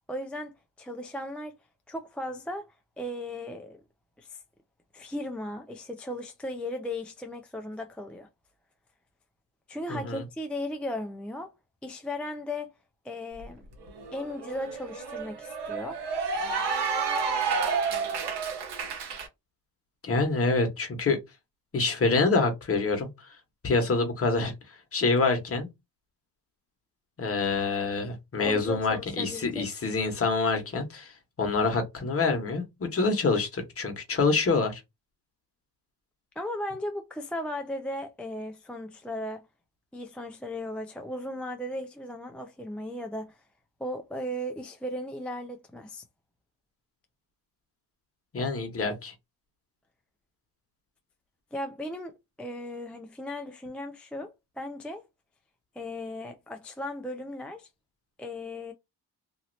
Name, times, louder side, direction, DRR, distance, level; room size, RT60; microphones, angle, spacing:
voice 1, 0.1-1.6 1.9-3.8 4.2-4.4 4.9-8.3 9.7-11.5 11.8-12.7 13.0-13.7 14.1-16.0 28.4-29.7 36.4-39.5 39.9-43.4 43.8-46.0 51.5-55.0 55.7-57.7 58.2-58.7, left 1 dB, 5° left, 0.3 m, -36 dB
voice 2, 9.9-10.2 20.0-21.2 21.7-23.4 23.6-25.7 27.2-34.8 48.3-49.1, left 3 dB, 35° left, 1.2 m, -26 dB
Cheering / Applause, 13.4-13.5 13.8-19.3, right 5 dB, 85° right, 1.2 m, -30 dB
3.0 x 2.7 x 2.7 m
cardioid pair, 110°, 40 cm